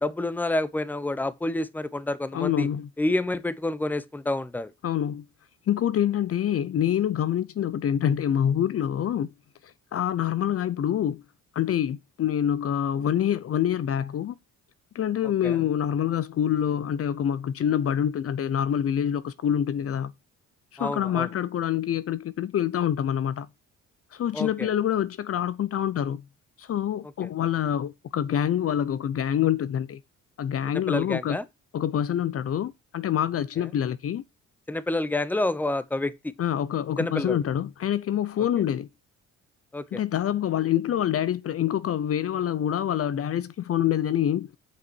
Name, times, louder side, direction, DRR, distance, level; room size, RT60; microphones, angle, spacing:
voice 1, 0.0-2.7 3.0-4.7 15.2-15.6 20.8-21.3 24.3-24.7 27.2-27.3 30.7-31.4 33.6-33.7 34.7-36.3 37.0-37.4 39.7-40.0, left 2 dB, 5° left, 0.8 m, -28 dB
voice 2, 2.3-2.9 4.8-5.3 5.7-9.3 9.6-11.2 11.5-14.4 14.9-20.1 20.7-23.5 24.1-26.2 26.6-30.0 30.4-31.4 31.7-34.2 36.4-38.9 39.9-44.5, left 10 dB, 50° left, 0.6 m, -26 dB
8.1 x 5.7 x 4.5 m
cardioid pair, 90°, 30 cm